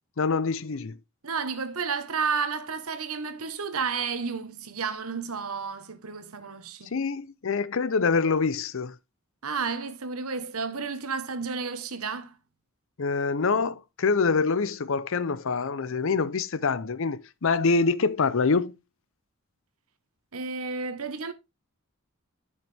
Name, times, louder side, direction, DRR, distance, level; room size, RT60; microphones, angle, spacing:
voice 1, 0.2-1.0 6.9-9.0 13.0-18.8, left 4 dB, 65° left, 0.6 m, -25 dB
voice 2, 1.2-6.9 9.4-12.4 20.3-21.3, right 5 dB, 85° right, 1.2 m, -31 dB
10.5 x 6.5 x 3.4 m
head